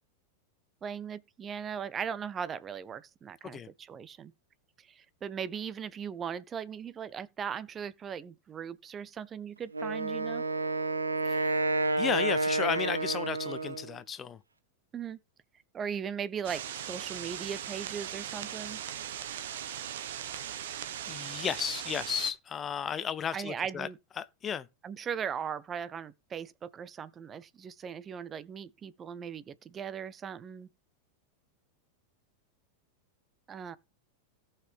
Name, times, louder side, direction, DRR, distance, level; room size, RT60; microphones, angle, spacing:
voice 1, 0.8-4.3 4.8-10.4 14.9-15.2 15.7-18.8 23.3-24.0 24.8-30.7 33.5-33.8, right 7 dB, 25° right, 0.8 m, -38 dB
Wind instrument woodwind instrument, 9.7-14.0, right 3 dB, 90° right, 1.1 m, -30 dB
voice 2, 12.0-14.4 21.1-23.9 24.2-24.7, left 8 dB, 25° left, 0.7 m, -34 dB
sound 1, 16.4-22.3, right 10 dB, 65° right, 1.3 m, -39 dB
17.5 x 5.8 x 3.6 m
figure-of-eight pair, 95°, 0 cm